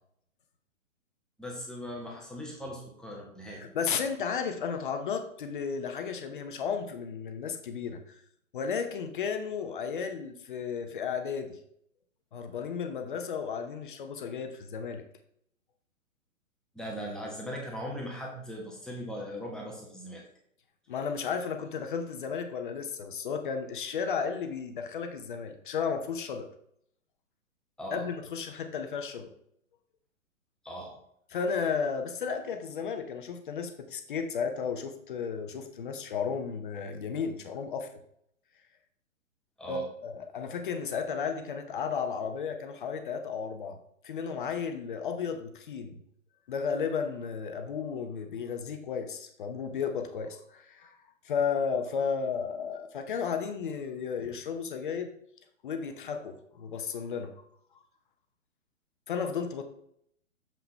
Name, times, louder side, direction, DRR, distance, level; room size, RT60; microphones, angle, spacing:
voice 1, 1.4-3.6 16.7-20.2 27.8-28.0 30.6-30.9 39.6-39.8, equal, ahead, -2 dB, 1.1 m, -39 dB
voice 2, 3.5-8.2 8.5-11.6 12.3-15.0 20.9-26.5 27.9-29.3 31.3-37.9 39.7-43.8 44.0-46.0 46.5-51.0 51.2-55.1 55.6-57.3 59.1-59.6, left 6 dB, 40° left, 6 dB, 0.8 m, -33 dB
7.3 x 5.7 x 3.2 m, 0.70 s
figure-of-eight pair, 120°, 40 cm